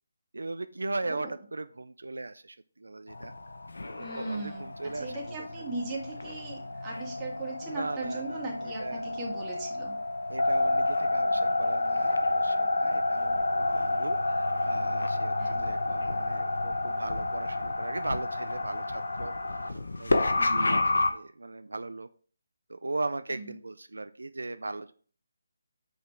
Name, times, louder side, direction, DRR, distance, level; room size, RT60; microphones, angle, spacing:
voice 1, 0.3-3.3 4.0-5.5 7.6-9.2 10.3-19.3 19.6-20.8 21.1-22.1 22.7-24.9, right 2 dB, 80° right, 12 dB, 0.4 m, -38 dB
sound 1, 3.1-21.1, left 2 dB, 80° left, 0.8 m, -29 dB
voice 2, 4.0-4.7 4.9-10.0 15.4-15.6 20.4-20.8 23.3-23.5, right 2 dB, 20° right, -3 dB, 2.0 m, -38 dB
5.7 x 5.6 x 3.5 m, 0.43 s
figure-of-eight pair, 155°, 0 cm